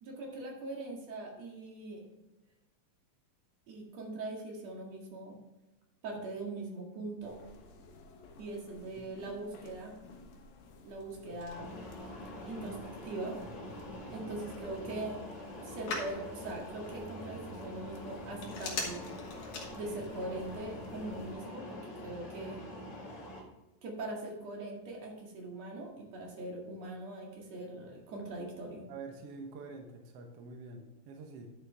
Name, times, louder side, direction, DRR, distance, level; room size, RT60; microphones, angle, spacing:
voice 1, 0.0-2.0 3.7-5.4 6.0-7.4 8.4-9.9 10.8-11.7 12.5-13.4 14.1-15.2 15.6-19.0 19.7-22.6 23.8-28.9, right 2 dB, 50° right, -1 dB, 3.0 m, -41 dB
sound 1, 7.2-21.4, left 2 dB, 80° left, 3.0 m, -54 dB
Telephone, 10.7-20.3, left 3 dB, 65° left, 3.2 m, -46 dB
sound 2, 11.5-23.4, left 1 dB, 45° left, 2.6 m, -45 dB
voice 2, 28.9-31.5, right 3 dB, 70° right, 3 dB, 1.5 m, -47 dB
10.5 x 7.5 x 3.4 m, 1.0 s
omnidirectional pair, 4.1 m